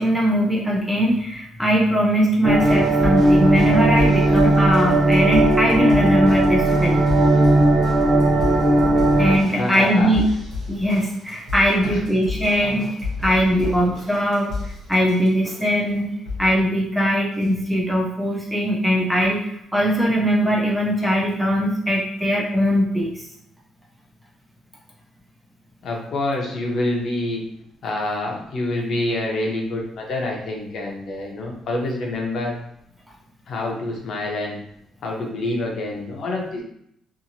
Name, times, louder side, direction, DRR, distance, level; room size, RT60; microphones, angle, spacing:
voice 1, 0.0-7.0 9.2-10.3 10.7-12.9 13.2-16.1 16.4-23.2, equal, 5° right, -3 dB, 0.4 m, -20 dB
sound 1, 2.4-9.4, right 2 dB, 90° right, 0.6 m, -17 dB
sound 2, 2.6-15.8 16.2-16.6 17.4-17.5, left 3 dB, 65° right, 0.9 m, -33 dB
voice 2, 9.6-10.1 11.8-12.0 12.6-12.7 25.8-27.4 27.8-32.6 33.5-34.6 35.0-36.6, left 2 dB, 50° left, -1 dB, 0.6 m, -27 dB
2.8 x 2.5 x 2.6 m, 0.73 s
cardioid pair, 170°, 0 cm